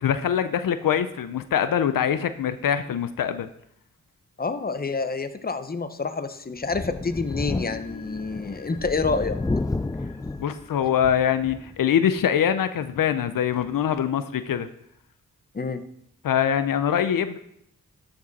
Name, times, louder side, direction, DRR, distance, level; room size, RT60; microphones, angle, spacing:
voice 1, 0.0-3.5 10.4-14.7 16.2-17.4, left 9 dB, 85° left, 11 dB, 0.6 m, -23 dB
voice 2, 4.4-9.4 15.5-15.8, left 4 dB, 30° left, 10 dB, 0.8 m, -28 dB
Thunder, 6.6-11.7 12.2-12.3 13.6-13.7, left 2 dB, 10° left, 0.4 m, -31 dB
sound 1, 7.0-13.9, left 4 dB, 55° left, 3.0 m, -48 dB
13.0 x 5.3 x 4.1 m, 0.74 s
cardioid pair, 50°, 33 cm